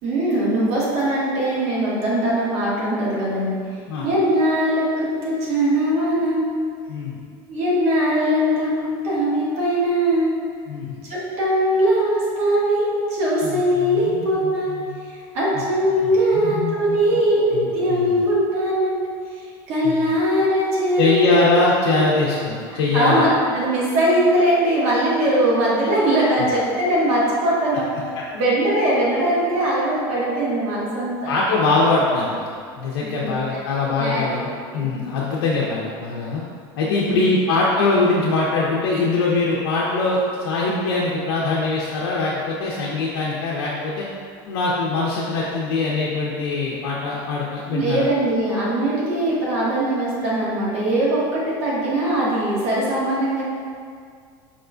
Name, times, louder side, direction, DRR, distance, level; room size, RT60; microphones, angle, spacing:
voice 1, 0.0-6.5 7.5-10.3 11.0-14.7 15.1-19.0 19.7-21.4 21.9-22.0 22.7-28.0 28.3-31.3 33.0-33.6 34.0-34.3 34.7-34.9 36.8-37.2 47.7-53.4, right 1 dB, 55° right, -7 dB, 1.2 m, -21 dB
voice 2, 6.9-7.2 10.7-11.0 13.4-14.9 16.0-17.2 17.5-18.1 19.8-20.1 21.0-23.2 31.3-32.5 32.8-36.4 36.8-44.1 44.5-48.1, left 3 dB, 85° left, -5 dB, 0.5 m, -22 dB
4.9 x 2.2 x 2.4 m, 2.1 s
supercardioid pair, 110°, 13 cm